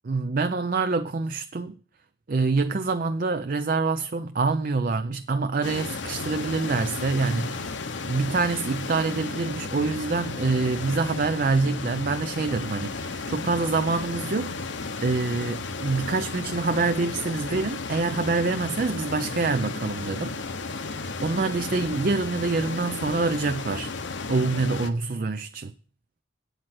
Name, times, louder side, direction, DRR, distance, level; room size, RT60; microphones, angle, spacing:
voice 1, 0.0-1.7 2.3-7.7 8.0-14.6 15.0-20.4 20.6-23.9 24.3-25.7, right 3 dB, 45° right, 0.5 m, -26 dB
sound 1, 5.6-24.9, left 3 dB, 70° left, 1.0 m, -34 dB
9.0 x 8.0 x 6.0 m
head